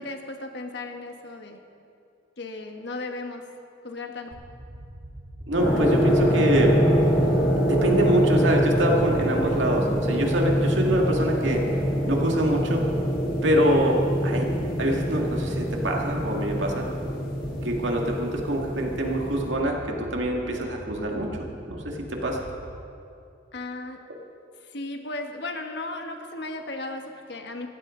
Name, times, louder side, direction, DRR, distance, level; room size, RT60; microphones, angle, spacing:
voice 1, 0.0-1.6 2.4-3.4 3.8-4.3 23.5-24.0 24.6-27.7, left 2 dB, 65° left, 4 dB, 1.3 m, -35 dB
sound 1, 4.3-22.8, right 1 dB, 60° right, 1.2 m, -42 dB
voice 2, 5.5-6.8 7.6-11.8 12.1-12.9 13.4-16.9 17.6-22.4, right 1 dB, 85° right, 0 dB, 2.1 m, -25 dB
sound 2, 5.6-19.5, equal, 50° left, 2.8 m, -25 dB
17.5 x 15.0 x 3.9 m, 2.5 s
head